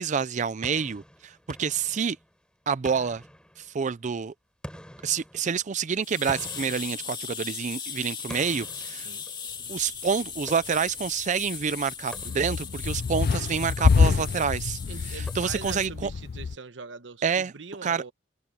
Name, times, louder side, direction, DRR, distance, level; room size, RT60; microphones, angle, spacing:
voice 1, 0.0-2.2 2.7-3.2 3.6-4.3 5.0-9.1 9.7-14.8 15.1-16.1 17.2-17.5 17.8-18.0, right 6 dB, 40° right, 0.4 m, -28 dB
sound 1, 0.6-2.4 2.9-4.0 4.6-7.7 8.3-9.7 10.5-11.1 12.1-12.8 13.7-14.4 15.3-15.9, equal, 5° left, 5.3 m, -46 dB
sound 2, 6.0-15.9, left 6 dB, 25° left, 2.0 m, -38 dB
voice 2, 8.8-9.2 14.9-18.1, right 4 dB, 85° right, 1.1 m, -42 dB
sound 3, 12.2-16.6, left 5 dB, 55° left, 0.4 m, -26 dB
head